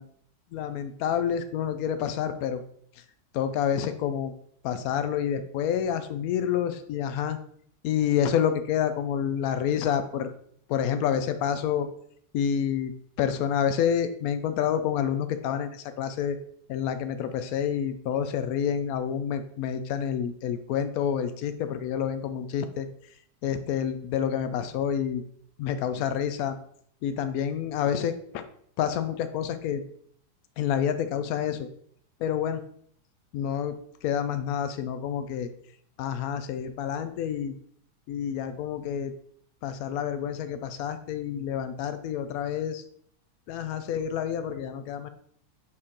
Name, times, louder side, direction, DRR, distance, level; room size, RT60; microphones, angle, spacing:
voice 1, 0.5-2.6 3.3-4.3 4.6-7.4 7.8-10.3 10.7-11.9 12.3-12.9 13.2-16.4 16.7-22.9 23.4-25.2 25.6-26.6 27.0-28.4 28.8-29.8 30.6-31.7 32.2-32.6 33.3-33.8 34.0-35.5 36.0-37.5 38.1-39.1 39.6-42.8 43.5-45.1, left 8 dB, 80° left, 9 dB, 0.8 m, -28 dB
6.2 x 4.5 x 3.6 m, 0.65 s
omnidirectional pair, 2.1 m